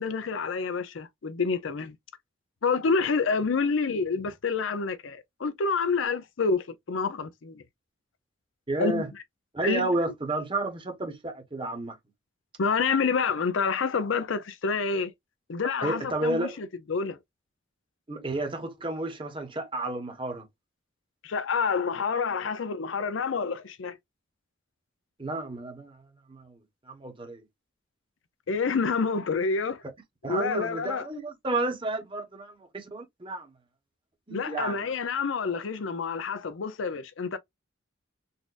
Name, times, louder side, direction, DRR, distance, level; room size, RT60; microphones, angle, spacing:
voice 1, 0.0-2.0 2.6-7.6 8.8-9.0 9.6-9.9 12.6-15.1 15.5-17.2 21.2-24.0 28.5-29.8 30.2-31.1 34.3-37.4, left 5 dB, 75° left, 0.5 m, -28 dB
voice 2, 8.7-9.1 9.5-12.0 15.8-16.6 18.1-20.4 25.2-26.0 26.3-26.6 26.9-27.4 30.2-33.5 34.3-34.9, right 2 dB, 25° right, 1.0 m, -31 dB
4.0 x 2.5 x 2.4 m
head